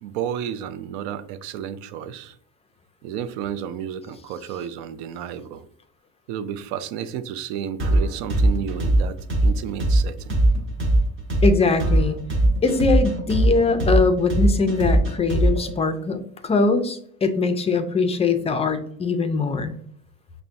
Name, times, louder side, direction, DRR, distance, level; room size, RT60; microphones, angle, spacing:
voice 1, 0.0-2.4 3.0-5.7 6.3-10.3, right 9 dB, 80° right, 12 dB, 0.5 m, -32 dB
sound 1, 7.8-15.7, right 1 dB, 35° right, 1.0 m, -20 dB
voice 2, 11.4-12.2 12.6-19.7, left 4 dB, 20° left, 8 dB, 0.4 m, -22 dB
5.5 x 2.2 x 2.5 m, 0.66 s
supercardioid pair, 110°, 34 cm